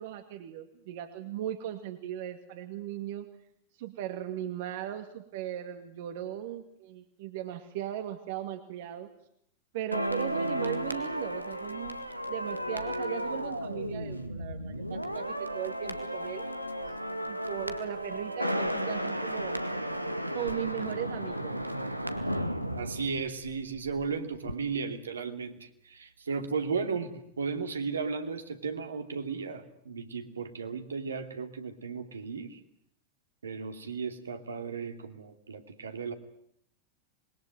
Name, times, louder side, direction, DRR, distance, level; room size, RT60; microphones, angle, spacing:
voice 1, 0.0-3.3 3.8-9.1 9.7-12.0 12.3-16.4 17.3-19.6 20.3-21.6, right 11 dB, 50° right, 8 dB, 2.2 m, -38 dB
sound 1, 9.9-24.1 24.3-24.5, equal, 90° right, 1.8 m, -34 dB
voice 2, 22.7-27.1 27.4-32.6 33.4-36.1, right 5 dB, 70° right, 6 dB, 2.7 m, -35 dB
27.0 x 21.5 x 9.3 m, 0.71 s
figure-of-eight pair, 90°, 0 cm